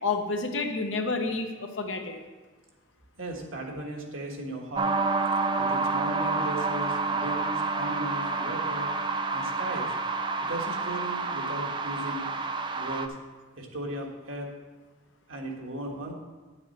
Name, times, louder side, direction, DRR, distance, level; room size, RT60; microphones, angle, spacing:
voice 1, 0.0-2.2, left 3 dB, 70° left, 4 dB, 0.9 m, -29 dB
voice 2, 3.2-4.9 5.6-8.9 9.3-9.9 10.4-12.3 12.7-13.1 13.6-14.5 15.3-16.1, right 1 dB, 85° right, 1 dB, 1.5 m, -37 dB
sound 1, 4.7-13.1, right 3 dB, 25° right, 0.4 m, -29 dB
9.7 x 7.1 x 4.2 m, 1.3 s
head